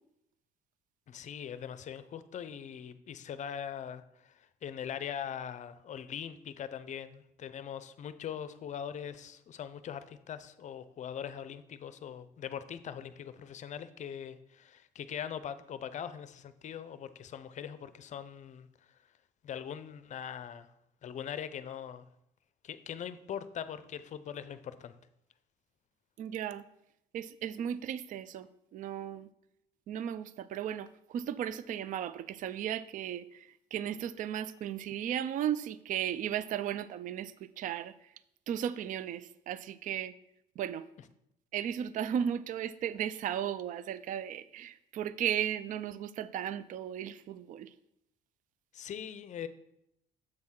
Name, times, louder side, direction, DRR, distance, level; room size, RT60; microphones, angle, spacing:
voice 1, 1.1-18.7 19.4-20.7 21.0-22.1 22.6-24.9 41.0-41.1 48.7-49.5, left 8 dB, 45° left, 13 dB, 0.5 m, -41 dB
voice 2, 26.2-26.6 27.1-28.5 28.7-29.3 29.9-30.9 31.1-33.3 33.7-37.3 37.6-37.9 38.5-40.1 40.6-40.8 41.5-47.7, right 10 dB, 50° right, 16 dB, 0.4 m, -35 dB
7.6 x 6.1 x 3.7 m, 0.80 s
cardioid pair, 110°, 17 cm